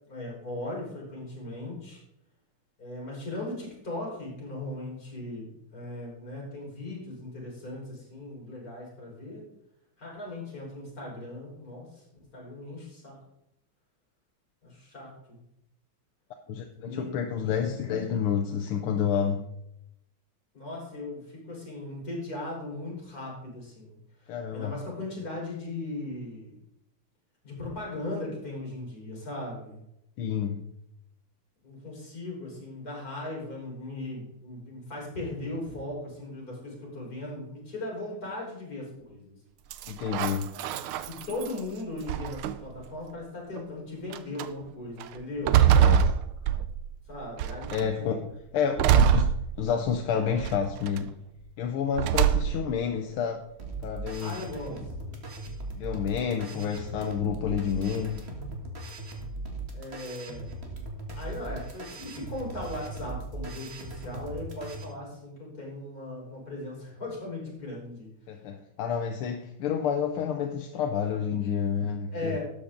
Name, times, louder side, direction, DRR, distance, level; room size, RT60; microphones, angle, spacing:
voice 1, 0.0-2.0 2.8-9.4 10.0-13.2 14.6-15.4 16.8-17.2 20.5-26.5 27.4-29.8 31.6-39.4 40.5-40.7 41.1-45.6 47.1-48.2 54.2-55.2 59.7-60.5 61.2-68.4 72.1-72.4, left 2 dB, 45° left, -3 dB, 4.7 m, -38 dB
voice 2, 16.5-19.4 24.3-24.7 30.2-30.6 39.9-40.5 45.6-46.1 47.7-48.3 48.5-51.1 51.6-53.4 53.8-54.4 55.8-58.3 68.3-72.4, left 7 dB, 85° left, 4 dB, 1.7 m, -29 dB
sound 1, 39.7-41.6 42.1-42.8 43.6-43.7 44.1-44.5 45.0-47.0 47.4-47.9 48.8-49.9 50.4-51.0 52.0-52.8, right 9 dB, 85° right, 1.5 m, -24 dB
sound 2, 53.6-64.8, right 2 dB, 30° right, 1.7 m, -39 dB
12.5 x 8.4 x 3.8 m, 0.80 s
omnidirectional pair, 2.3 m